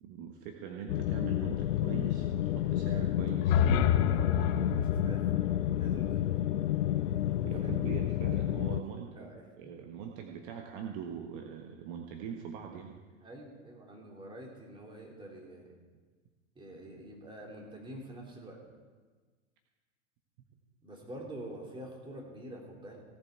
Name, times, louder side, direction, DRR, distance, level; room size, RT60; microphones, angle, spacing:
voice 1, 0.0-3.6 7.4-9.3 9.6-13.0, right 7 dB, 45° right, 2 dB, 1.4 m, -42 dB
sound 1, 0.9-8.8, left 13 dB, 70° left, 0.5 m, -30 dB
sound 2, 3.3-7.3, left 8 dB, 45° left, 0.9 m, -30 dB
voice 2, 4.0-5.3 5.7-6.3 7.0-7.1 7.4-7.7 9.1-9.7 13.2-15.7 16.5-18.6 20.8-23.0, right 1 dB, 15° right, -1 dB, 3.3 m, -46 dB
17.0 x 8.0 x 4.7 m, 1.4 s
hypercardioid pair, 105°, 38 cm